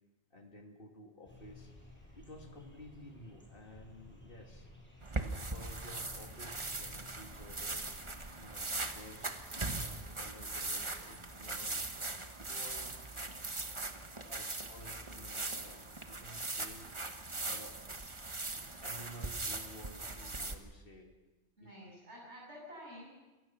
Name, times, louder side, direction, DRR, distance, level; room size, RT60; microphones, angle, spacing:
voice 1, 0.3-1.7 2.1-4.7 5.2-7.9 8.4-11.9 12.4-12.9 13.8-13.9 14.3-16.9 17.4-17.7 18.6-21.1 21.6-21.7, left 1 dB, 50° left, 2 dB, 2.7 m, -53 dB
sound 1, 1.3-10.4, left 1 dB, 10° left, 6.4 m, -56 dB
sound 2, 5.0-20.5, right 2 dB, 25° right, 1.2 m, -40 dB
voice 2, 21.6-23.2, equal, 70° right, -4 dB, 7.5 m, -50 dB
28.5 x 17.0 x 5.9 m, 1.1 s
omnidirectional pair, 1.2 m